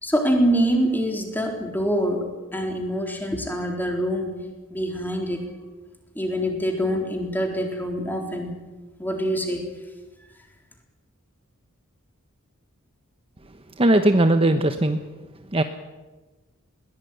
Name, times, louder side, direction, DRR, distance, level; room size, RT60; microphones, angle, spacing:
voice 1, 0.0-4.4 4.7-5.5 6.1-8.5 9.0-9.7, equal, 10° left, 2 dB, 4.0 m, -25 dB
voice 2, 13.4-15.0 15.5-15.6, right 1 dB, 25° right, 8 dB, 1.1 m, -19 dB
21.5 x 17.0 x 9.4 m, 1.2 s
head